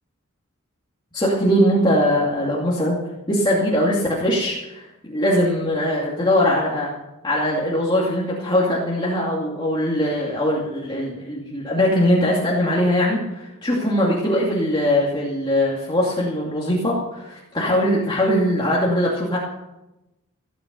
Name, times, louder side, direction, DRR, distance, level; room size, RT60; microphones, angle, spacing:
voice 1, 1.1-3.0 3.3-6.9 7.2-19.4, equal, 20° left, -5 dB, 2.4 m, -21 dB
17.0 x 10.0 x 6.8 m, 0.96 s
head